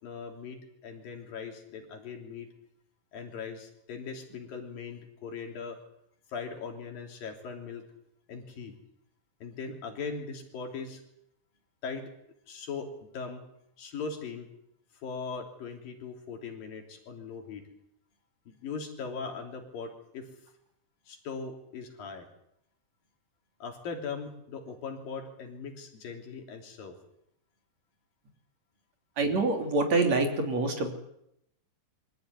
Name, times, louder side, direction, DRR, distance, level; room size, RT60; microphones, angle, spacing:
voice 1, 0.0-2.5 3.1-5.8 6.3-7.9 8.3-8.7 9.4-11.0 11.8-12.1 12.5-13.4 13.8-14.5 15.0-17.7 18.5-20.3 21.1-22.3 23.6-27.0, left 5 dB, 80° left, 3 dB, 5.0 m, -40 dB
voice 2, 29.2-30.9, right 3 dB, 50° right, 4 dB, 4.3 m, -26 dB
24.5 x 15.5 x 9.8 m, 0.78 s
omnidirectional pair, 4.0 m